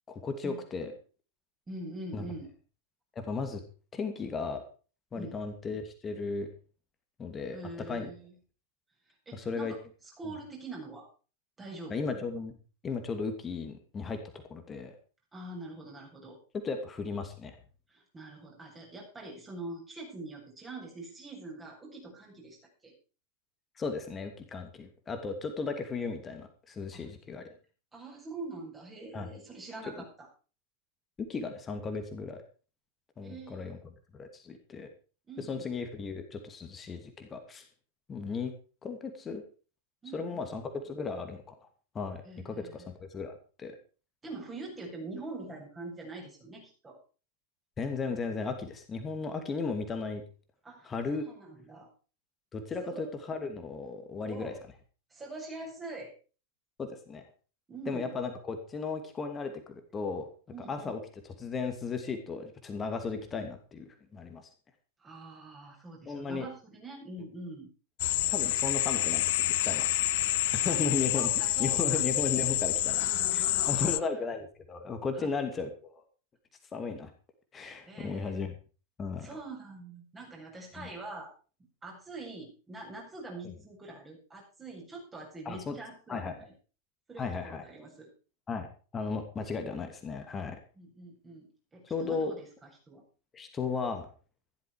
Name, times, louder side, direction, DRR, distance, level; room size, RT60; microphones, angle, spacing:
voice 1, 0.1-0.9 2.1-2.2 3.2-3.6 3.9-4.6 5.1-6.5 7.2-7.6 7.9-8.1 9.3-9.7 11.9-12.5 12.8-14.9 16.6-17.6 23.8-27.4 29.1-29.3 31.2-32.4 33.2-34.9 35.4-37.7 38.1-38.5 38.8-39.4 40.1-41.5 41.9-43.7 47.8-50.2 50.8-51.3 52.5-54.5 56.8-57.3 57.9-60.3 60.7-61.0 61.4-64.4 66.1-66.5 68.3-69.9 70.5-71.3 71.6-73.0 73.3-76.0 76.7-77.1 77.5-78.5 79.0-79.3 80.8-80.9 85.5-85.8 86.1-86.3 87.2-87.6 88.5-88.7 88.9-90.6 91.9-92.4 93.3-94.1, left 4 dB, 20° left, 6 dB, 2.6 m, -35 dB
voice 2, 1.7-2.5 5.1-5.4 7.5-8.3 9.3-9.8 10.2-11.1 11.6-12.1 15.3-16.4 17.9-22.6 22.8-22.9 26.9-27.1 27.5-27.6 27.9-30.3 33.2-33.8 35.3-35.7 40.0-40.5 42.2-42.9 44.2-47.0 50.6-51.9 52.8-53.0 54.2-54.6 55.1-56.1 57.7-58.1 60.5-60.9 65.0-67.7 70.6-70.9 71.2-72.0 72.8-74.0 75.1-75.3 77.9-78.4 79.2-81.3 81.8-86.5 87.1-88.1 89.4-89.5 90.8-93.0, right 2 dB, 15° right, -1 dB, 7.8 m, -44 dB
sound 1, 68.0-74.0, left 16 dB, 50° left, 0.6 m, -28 dB
14.5 x 13.0 x 5.0 m, 0.37 s
figure-of-eight pair, 90°, 0 cm